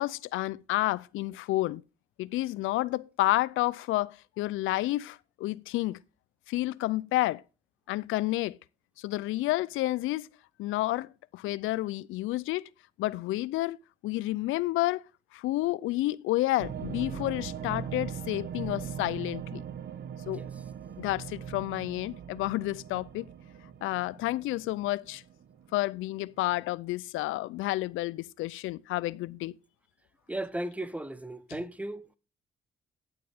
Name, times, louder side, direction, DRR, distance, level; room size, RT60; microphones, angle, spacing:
voice 1, 0.0-1.8 2.2-6.0 6.5-7.4 7.9-8.6 9.0-10.3 10.6-12.7 13.0-13.8 14.0-15.0 15.3-19.6 20.3-20.4 21.0-23.3 23.8-25.2 25.7-29.6, left 17 dB, 90° left, 0.5 m, -30 dB
sound 1, 16.6-25.9 26.1-26.2 26.5-26.6, right 8 dB, 55° right, 1.1 m, -40 dB
voice 2, 30.3-32.1, right 1 dB, 5° right, 0.9 m, -36 dB
10.5 x 7.7 x 3.5 m
cardioid pair, 90°, 20 cm